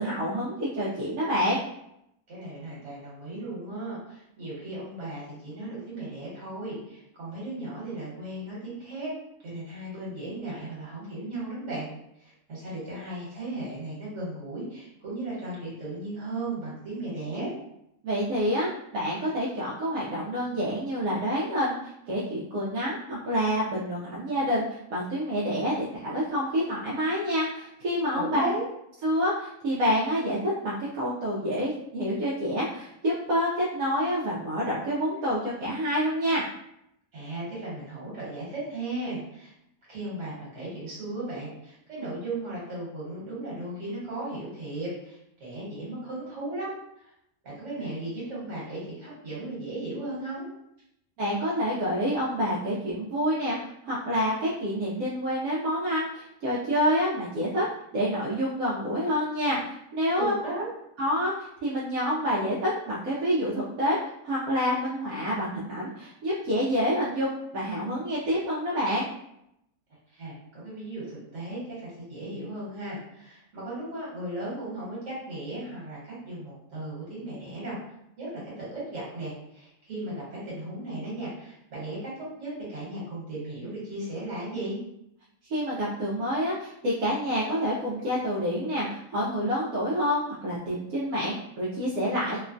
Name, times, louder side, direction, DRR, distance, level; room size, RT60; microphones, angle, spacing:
voice 1, 0.0-1.6 18.0-28.5 29.0-36.4 51.2-57.6 57.9-60.4 61.0-64.0 64.2-69.1 85.5-92.4, equal, 80° right, -7 dB, 1.1 m, -28 dB
voice 2, 2.3-9.1 9.4-11.9 12.2-17.5 28.1-28.7 37.1-39.5 39.9-47.1 47.4-50.5 60.2-60.7 70.1-77.8 78.2-84.8, right 2 dB, 55° right, -7 dB, 1.5 m, -36 dB
3.0 x 2.1 x 2.5 m, 0.78 s
omnidirectional pair, 1.5 m